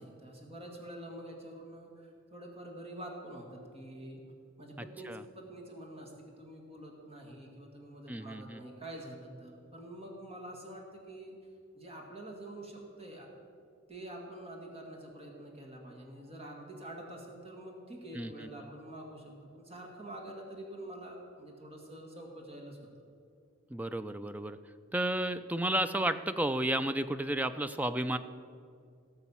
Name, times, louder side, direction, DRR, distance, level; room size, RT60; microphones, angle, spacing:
voice 1, 0.0-4.2 4.6-6.1 6.4-11.4 11.7-13.3 13.9-22.8, right 1 dB, 30° right, 0 dB, 1.9 m, -46 dB
voice 2, 8.1-8.6 18.1-18.5 23.7-24.6 24.9-28.2, right 1 dB, 10° right, 11 dB, 0.3 m, -32 dB
18.0 x 6.8 x 5.6 m, 2.3 s
head